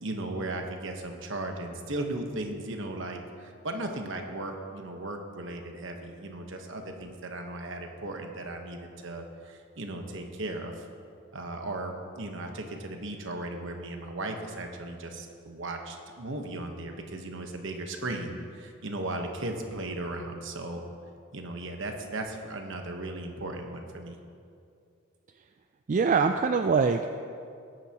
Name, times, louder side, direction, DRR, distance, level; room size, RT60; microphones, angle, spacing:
voice 1, 0.0-10.9 11.3-20.8 21.3-24.2, right 2 dB, 65° right, 3 dB, 1.2 m, -36 dB
voice 2, 25.9-27.1, right 5 dB, 40° right, 6 dB, 0.3 m, -23 dB
17.5 x 9.3 x 3.0 m, 2.4 s
head